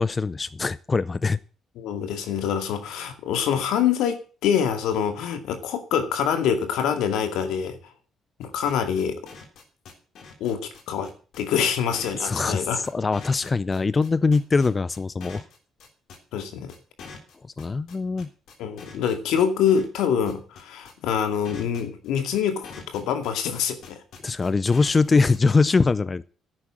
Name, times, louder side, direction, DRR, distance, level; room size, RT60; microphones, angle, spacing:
voice 1, 0.0-1.4 12.2-15.4 17.6-18.3 24.2-26.2, left 4 dB, 25° left, 17 dB, 0.5 m, -22 dB
voice 2, 1.8-7.8 8.4-9.2 10.4-11.1 11.4-12.8 16.3-16.7 18.6-24.0, left 8 dB, 85° left, 7 dB, 2.2 m, -25 dB
sound 1, 8.4-25.4, left 5 dB, 70° left, 3.6 m, -44 dB
11.0 x 8.7 x 7.6 m, 0.38 s
cardioid pair, 100°, 0 cm